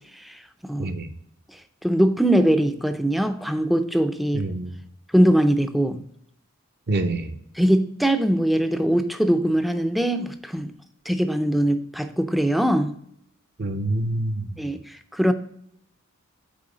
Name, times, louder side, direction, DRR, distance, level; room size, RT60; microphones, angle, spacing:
voice 1, 0.8-1.1 4.3-4.8 6.9-7.3 13.6-14.6, right 2 dB, 50° right, 0.7 m, -26 dB
voice 2, 1.8-4.5 5.1-6.0 7.6-10.7 11.1-12.9 14.6-15.3, right 1 dB, ahead, 0.4 m, -21 dB
8.7 x 4.0 x 3.8 m
head